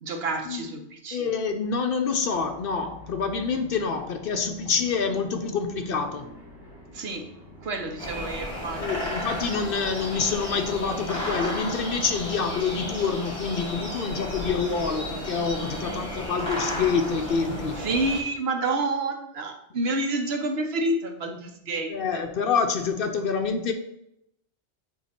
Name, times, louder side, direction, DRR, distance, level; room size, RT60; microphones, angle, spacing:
voice 1, 0.0-1.3 6.9-7.2 7.6-8.8 15.8-16.0 17.8-22.2, right 2 dB, 65° right, 4 dB, 1.1 m, -29 dB
voice 2, 1.1-6.3 8.8-17.7 21.9-23.7, left 5 dB, 60° left, 6 dB, 0.7 m, -27 dB
sound 1, 2.3-13.1, left 1 dB, 20° right, 2.2 m, -48 dB
sound 2, 8.0-18.2, left 1 dB, 30° left, 2.0 m, -33 dB
8.5 x 2.8 x 4.3 m, 0.81 s
omnidirectional pair, 1.2 m